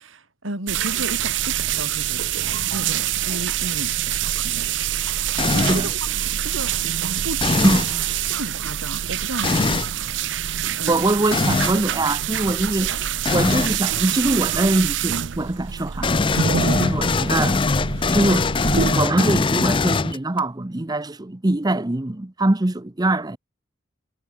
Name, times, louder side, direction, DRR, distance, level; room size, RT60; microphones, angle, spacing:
voice 1, 0.0-2.4 2.7-6.7 7.2-7.8 8.3-11.0, right 1 dB, 90° right, 4.4 m, -34 dB
sound 1, 0.7-18.9, right 10 dB, 65° right, 0.6 m, -26 dB
sound 2, 5.4-5.9 7.4-7.9 9.4-9.9 11.3-11.8 13.3-13.8 16.0-20.4, left 3 dB, 25° left, 0.5 m, -21 dB
voice 2, 7.6-8.0 10.9-12.9 13.3-16.1 16.8-17.6 18.1-18.5 18.8-23.4, right 2 dB, 20° right, 0.7 m, -23 dB
head